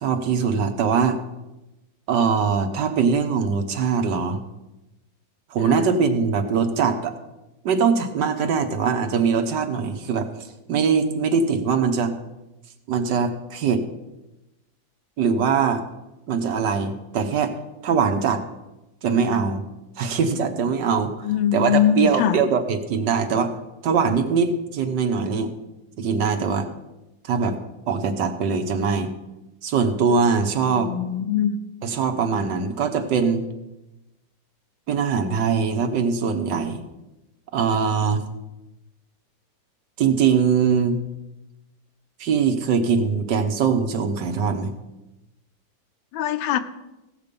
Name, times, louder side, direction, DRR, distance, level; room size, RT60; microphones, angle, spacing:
voice 1, 0.0-1.2 2.1-4.4 5.5-7.1 7.6-10.3 10.7-12.2 12.9-13.8 15.2-15.8 16.3-17.5 17.8-18.4 19.0-19.6 20.0-23.5 23.8-25.5 26.0-26.7 27.2-27.6 27.9-29.1 29.6-30.9 31.8-33.5 34.9-36.8 37.5-38.2 40.0-41.0 42.2-44.7, right 6 dB, 65° right, 8 dB, 1.6 m, -22 dB
voice 2, 21.2-22.4 30.7-31.6 46.1-46.6, left 9 dB, 85° left, 10 dB, 1.5 m, -22 dB
16.5 x 6.9 x 5.2 m, 0.99 s
omnidirectional pair, 2.1 m